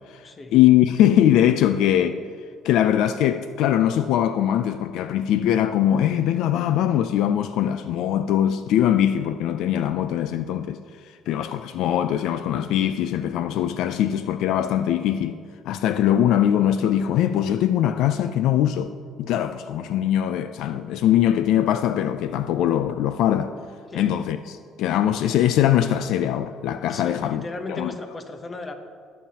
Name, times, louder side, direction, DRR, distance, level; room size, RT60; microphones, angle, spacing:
voice 1, 0.5-2.2 2.6-10.8 11.3-15.4 15.7-18.9 19.2-23.5 23.9-27.9, left 11 dB, 70° left, 0.3 m, -21 dB
voice 2, 26.9-28.7, left 3 dB, 20° left, 0.8 m, -35 dB
20.5 x 7.3 x 2.8 m
cardioid pair, 145°, 0 cm